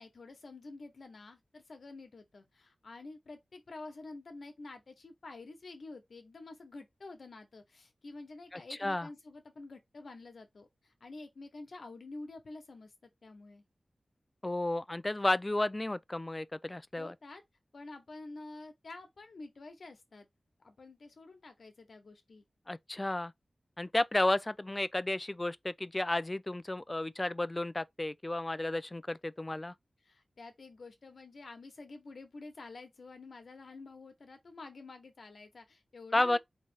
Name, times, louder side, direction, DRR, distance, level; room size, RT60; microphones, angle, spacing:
voice 1, 0.0-13.6 17.0-17.4 17.7-20.3 20.6-22.4 30.0-36.4, left 3 dB, 75° left, 1.2 m, -49 dB
voice 2, 8.5-9.1 14.4-17.1 22.7-23.3 23.8-29.7 36.1-36.4, left 1 dB, 25° left, 0.3 m, -32 dB
4.0 x 3.1 x 3.5 m
wide cardioid pair, 70°, 0 cm